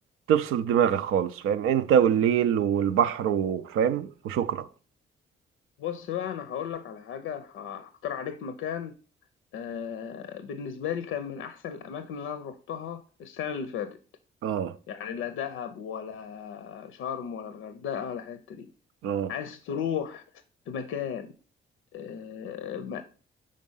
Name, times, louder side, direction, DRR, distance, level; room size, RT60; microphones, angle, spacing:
voice 1, 0.3-4.7 14.4-14.7 19.0-19.3, right 9 dB, 90° right, 0.4 m, -24 dB
voice 2, 5.8-8.9 9.5-14.0 14.9-18.7 19.3-20.2 20.7-21.3 21.9-23.0, left 8 dB, 80° left, 0.5 m, -35 dB
5.2 x 3.7 x 5.4 m
supercardioid pair, 60°, 21 cm